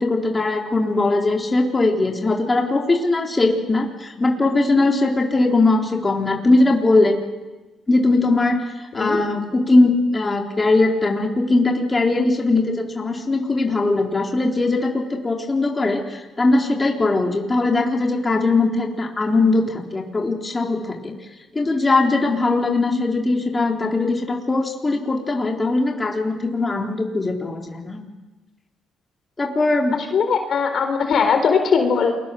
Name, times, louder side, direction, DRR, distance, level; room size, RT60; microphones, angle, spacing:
voice 1, 0.0-7.2 7.9-8.6 8.9-21.2 21.5-28.0 29.4-30.0, left 2 dB, 25° left, 1 dB, 3.8 m, -20 dB
voice 2, 30.1-32.1, left 6 dB, 60° left, 6 dB, 3.9 m, -19 dB
29.0 x 22.5 x 7.0 m, 1.2 s
cardioid pair, 90°, 0 cm